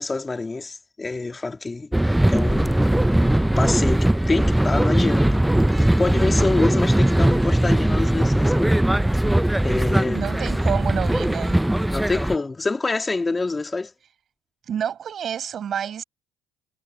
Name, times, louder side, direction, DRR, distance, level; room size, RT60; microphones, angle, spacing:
voice 1, 0.0-1.9 2.3-2.9 3.4-5.4 5.7-8.8 9.6-10.2 11.9-13.9, left 3 dB, 20° left, 3.0 m, -26 dB
sound 1, 1.9-12.4, right 1 dB, 5° right, 0.6 m, -20 dB
voice 2, 10.1-11.6 14.7-16.0, right 8 dB, 50° right, 5.8 m, -28 dB
supercardioid pair, 90°, 0 cm